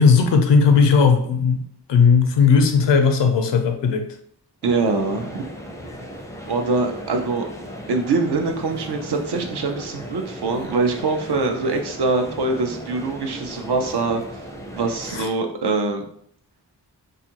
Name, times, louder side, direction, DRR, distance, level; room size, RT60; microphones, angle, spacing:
voice 1, 0.0-1.6 1.9-4.1 15.1-15.3, left 5 dB, 85° left, 6 dB, 0.5 m, -16 dB
sound 1, 4.6-15.3, equal, 10° left, 0.4 m, -37 dB
voice 2, 4.6-5.4 6.5-7.4 7.9-14.2 14.8-16.0, right 3 dB, 70° right, 4 dB, 0.6 m, -23 dB
2.6 x 2.4 x 2.8 m, 0.68 s
cardioid pair, 60°, 42 cm